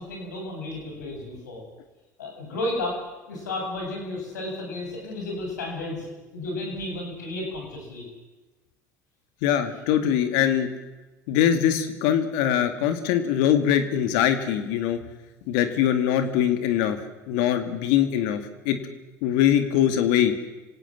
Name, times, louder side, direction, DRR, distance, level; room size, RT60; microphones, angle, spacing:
voice 1, 0.0-1.6 2.2-8.1, left 2 dB, 90° left, 0 dB, 7.9 m, -33 dB
voice 2, 9.4-10.7 11.3-15.0 15.5-17.0 17.3-18.8 19.2-20.3, left 10 dB, 70° left, 8 dB, 2.3 m, -22 dB
26.5 x 17.5 x 7.5 m, 1.1 s
hypercardioid pair, 70°, 9 cm